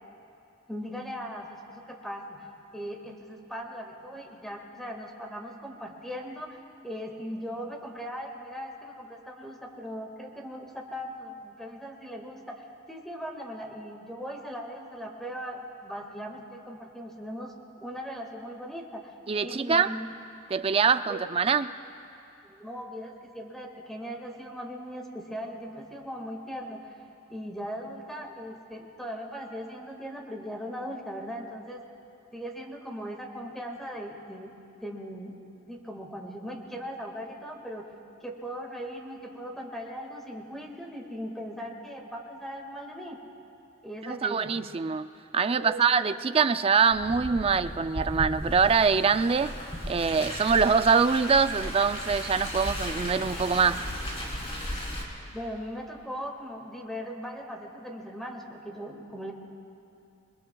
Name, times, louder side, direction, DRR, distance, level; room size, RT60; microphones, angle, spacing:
voice 1, 0.7-2.5 2.7-19.1 19.4-20.1 21.1-21.2 22.4-26.9 27.3-31.8 32.3-34.5 34.8-35.3 35.7-37.9 38.2-43.2 43.8-44.5 45.5-46.3 52.7-52.8 55.3-59.3, equal, ahead, 1 dB, 1.7 m, -39 dB
voice 2, 19.3-19.9 20.5-21.7 44.0-45.1 45.3-49.6 49.9-53.9, right 5 dB, 30° right, 11 dB, 0.4 m, -24 dB
Car, 46.9-55.0, equal, 30° left, 2.9 m, -36 dB
27.0 x 21.5 x 2.3 m, 2.7 s
head